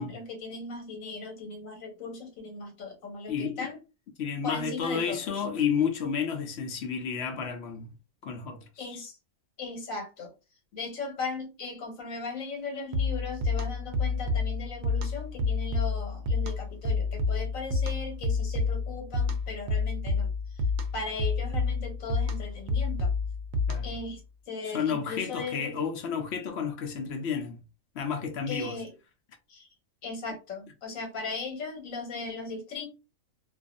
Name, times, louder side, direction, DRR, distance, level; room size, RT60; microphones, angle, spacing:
voice 1, 0.0-3.8 4.4-5.3 8.8-9.2 9.6-10.3 10.7-20.6 20.9-23.1 23.8-24.2 24.5-25.8 28.5-28.9 29.5-29.7 30.0-32.9, left 4 dB, 80° left, 1.3 m, -38 dB
voice 2, 3.3-3.7 4.2-7.9 8.2-8.9 23.7-23.9 24.6-27.6 27.9-28.8, left 6 dB, 60° left, 0.8 m, -31 dB
sound 1, 12.9-24.1, left 3 dB, 65° right, 0.8 m, -29 dB
2.5 x 2.4 x 2.4 m
omnidirectional pair, 1.4 m